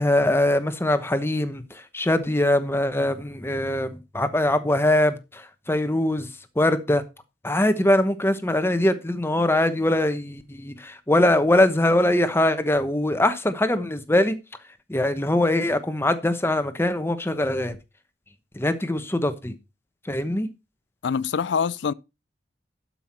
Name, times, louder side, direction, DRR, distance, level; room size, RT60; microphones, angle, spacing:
voice 1, 0.0-6.3 6.6-7.0 7.4-14.4 14.9-17.8 18.5-19.6 20.0-20.5, left 1 dB, 15° left, 1.0 m, -22 dB
voice 2, 21.0-21.9, left 6 dB, 70° left, 0.4 m, -24 dB
12.0 x 5.7 x 4.4 m
head